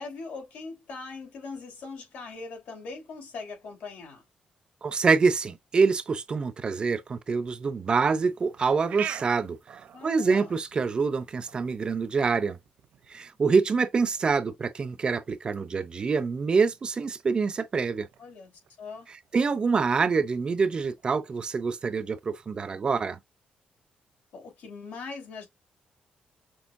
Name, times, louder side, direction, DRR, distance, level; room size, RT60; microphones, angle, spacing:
voice 1, 0.0-4.2 9.9-10.6 18.2-18.5 18.8-19.1 24.3-25.5, left 4 dB, 85° left, 3.5 m, -41 dB
voice 2, 4.8-9.6 10.0-12.6 13.1-18.1 19.3-23.2, right 5 dB, 35° right, 0.6 m, -26 dB
sound 1, 8.2-22.3, right 9 dB, 70° right, 0.9 m, -47 dB
6.3 x 3.2 x 2.6 m
cardioid pair, 145°, 3 cm